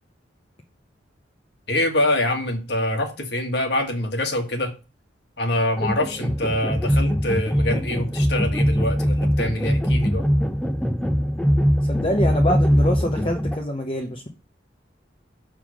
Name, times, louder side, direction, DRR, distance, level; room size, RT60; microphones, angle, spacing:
voice 1, 1.7-4.7 5.4-10.2, left 1 dB, 60° left, 4 dB, 1.6 m, -24 dB
sound 1, 5.8-13.6, equal, 5° left, 0.6 m, -22 dB
voice 2, 11.8-14.3, left 1 dB, 30° left, 1 dB, 0.9 m, -25 dB
6.7 x 3.7 x 6.1 m, 0.32 s
head